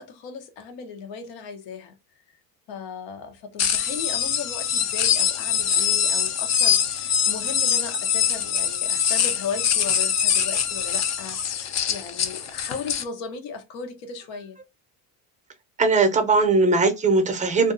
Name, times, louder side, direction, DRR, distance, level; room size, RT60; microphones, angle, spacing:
voice 1, 0.0-1.9 2.7-14.6, left 6 dB, 75° left, 0.9 m, -36 dB
sound 1, 3.6-13.0, left 8 dB, 40° left, 0.5 m, -23 dB
voice 2, 15.8-17.7, right 3 dB, 15° right, 0.6 m, -19 dB
2.5 x 2.2 x 2.5 m
cardioid pair, 105°, 44 cm